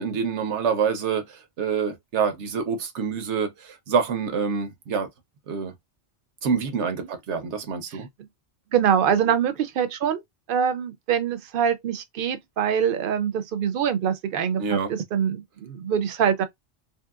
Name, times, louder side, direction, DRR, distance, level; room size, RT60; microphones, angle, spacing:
voice 1, 0.0-5.1 5.5-5.7 6.4-8.1 14.6-14.9, right 6 dB, 80° right, 1.0 m, -26 dB
voice 2, 8.7-10.2 10.5-16.4, right 8 dB, 60° right, 0.7 m, -24 dB
2.8 x 2.8 x 2.3 m
omnidirectional pair, 1.2 m